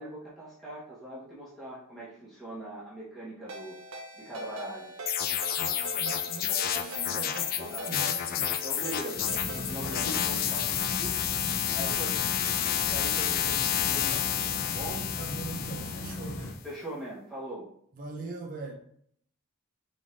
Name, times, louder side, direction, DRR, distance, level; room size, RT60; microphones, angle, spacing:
voice 1, 0.0-3.7 4.2-4.9 7.7-7.9 8.6-11.2 11.7-12.3 12.9-15.1 16.6-17.7, right 1 dB, ahead, -10 dB, 1.1 m, -41 dB
Ringtone, 3.5-10.4, right 2 dB, 70° right, 0.9 m, -42 dB
sound 1, 5.1-16.5, left 10 dB, 40° left, 0.3 m, -30 dB
voice 2, 5.6-8.6 15.2-16.6 17.9-18.7, right 3 dB, 35° right, 0 dB, 0.8 m, -41 dB
sound 2, 9.2-16.5, left 1 dB, 75° left, 0.7 m, -38 dB
5.2 x 3.4 x 2.6 m, 0.65 s
head